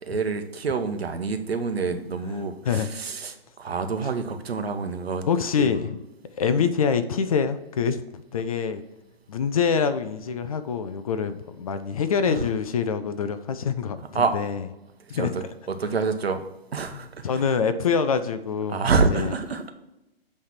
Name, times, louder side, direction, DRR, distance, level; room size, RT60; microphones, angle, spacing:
voice 1, 0.0-5.2 5.6-5.7 6.5-6.7 12.3-12.4 14.1-14.3 15.1-16.4 16.7-17.4 18.7-19.7, right 4 dB, 80° right, 7 dB, 1.0 m, -27 dB
voice 2, 5.3-6.0 6.4-8.8 9.3-14.6 15.1-15.3 16.9-18.8 19.1-19.3, left 6 dB, 35° left, 11 dB, 0.5 m, -25 dB
8.4 x 3.3 x 5.9 m, 0.94 s
figure-of-eight pair, 140°, 31 cm